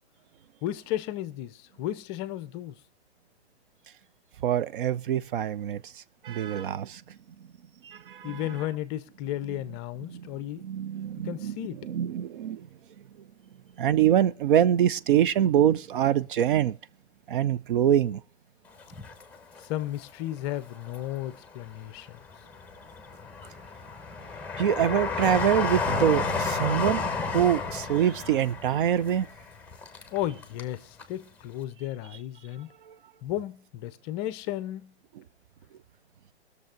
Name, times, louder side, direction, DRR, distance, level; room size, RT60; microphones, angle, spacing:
voice 1, 0.6-2.7 8.2-10.6 11.2-11.8 19.7-22.2 30.1-32.7 33.2-34.9, left 13 dB, 25° left, 0.6 m, -34 dB
voice 2, 4.4-5.8 6.2-7.0 7.8-8.4 10.1-10.3 10.6-11.6 11.8-12.7 13.8-16.8 17.3-18.2 24.6-27.0 27.3-29.3 32.9-33.0, right 10 dB, 50° right, 0.5 m, -24 dB
Train, 18.8-20.0 20.5-21.5 22.0-30.7 31.0-31.1, left 4 dB, 5° left, 1.1 m, -32 dB
sound 1, 25.9-29.6, right 1 dB, 80° right, 2.5 m, -40 dB
19.0 x 6.8 x 5.1 m
hypercardioid pair, 130°, 33 cm